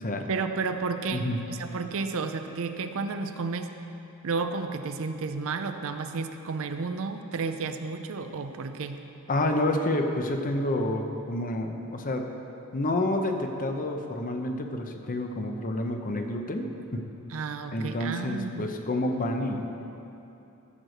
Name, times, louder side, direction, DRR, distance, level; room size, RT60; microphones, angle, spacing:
voice 1, 0.3-3.7 4.2-9.0 17.3-18.7, right 4 dB, 65° right, 8 dB, 0.5 m, -32 dB
voice 2, 9.3-12.2 12.7-16.7 17.7-19.8, left 1 dB, 40° left, 4 dB, 0.8 m, -29 dB
14.0 x 4.7 x 6.5 m, 2.9 s
head